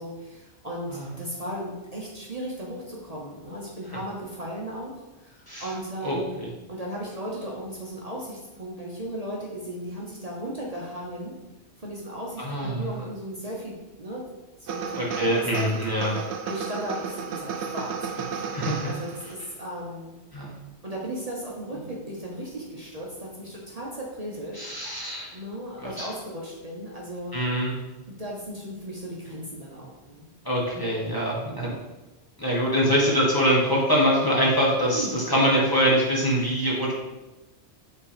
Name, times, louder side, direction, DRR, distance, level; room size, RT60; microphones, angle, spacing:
voice 1, 0.0-4.9 5.2-6.4 6.7-11.3 11.8-14.2 14.6-15.7 16.0-18.5 18.8-20.2 20.8-24.6 25.3-27.3 28.1-30.3 31.0-31.3 34.9-35.4, right 1 dB, 35° right, -3 dB, 1.0 m, -36 dB
voice 2, 6.0-6.5 12.4-12.9 14.9-16.1 18.5-18.9 20.3-20.5 24.6-25.3 25.8-26.1 27.3-27.7 30.4-31.7 32.4-36.9, equal, 20° left, -5 dB, 1.3 m, -24 dB
sound 1, 14.7-19.4, right 6 dB, 85° right, 0.9 m, -33 dB
5.8 x 3.7 x 5.0 m, 1.0 s
omnidirectional pair, 1.1 m